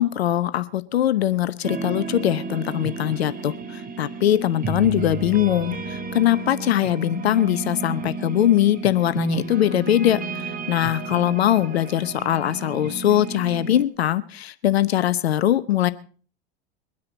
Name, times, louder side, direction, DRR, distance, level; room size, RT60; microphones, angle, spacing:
voice 1, 0.0-15.9, left 12 dB, 75° left, 15 dB, 0.8 m, -21 dB
sound 1, 1.6-13.8, right 4 dB, 25° right, 1.7 m, -32 dB
23.0 x 9.7 x 4.1 m, 0.40 s
hypercardioid pair, 80°, 31 cm